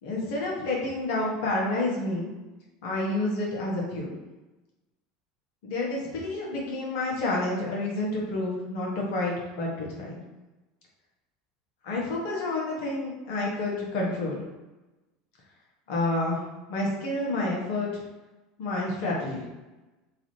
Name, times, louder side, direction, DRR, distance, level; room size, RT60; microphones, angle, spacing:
voice 1, 0.0-2.3 2.8-4.2 5.6-10.2 11.8-14.4 15.9-16.4 16.7-17.9 18.6-19.4, left 2 dB, 65° left, -3 dB, 1.1 m, -29 dB
3.0 x 2.5 x 3.1 m, 1.1 s
hypercardioid pair, 75°, 0 cm